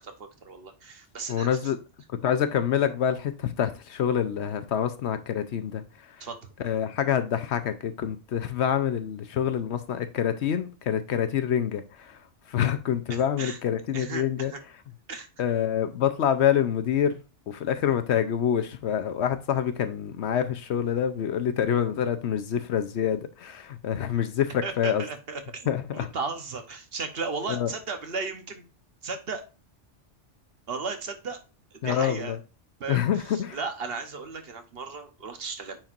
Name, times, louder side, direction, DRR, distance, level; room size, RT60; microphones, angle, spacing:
voice 1, 0.0-1.7 6.2-6.5 13.1-13.6 13.9-14.6 15.1-15.3 24.6-25.7 25.9-28.6 29.0-29.4 30.7-31.4 31.7-32.4 32.8-35.8, right 4 dB, 55° right, 1.1 m, -35 dB
voice 2, 1.3-1.8 2.2-6.2 6.6-12.2 12.5-14.5 15.4-25.0 25.7-26.1 27.5-27.7 31.8-32.4 32.9-33.6, left 9 dB, 70° left, 0.9 m, -26 dB
8.8 x 4.3 x 2.5 m
omnidirectional pair, 1.2 m